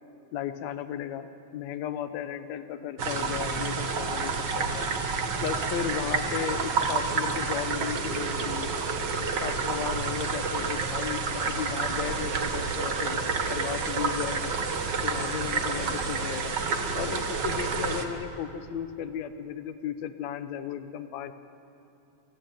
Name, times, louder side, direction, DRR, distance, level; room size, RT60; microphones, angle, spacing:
voice 1, 0.3-1.3 1.5-4.9 5.4-8.7 9.2-13.2 13.5-14.5 15.0-16.5 16.9-21.3, left 9 dB, 70° left, 10 dB, 1.8 m, -35 dB
sound 1, 3.0-18.0, right 4 dB, 70° right, 1.0 m, -29 dB
24.0 x 15.5 x 9.3 m, 2.8 s
omnidirectional pair, 4.1 m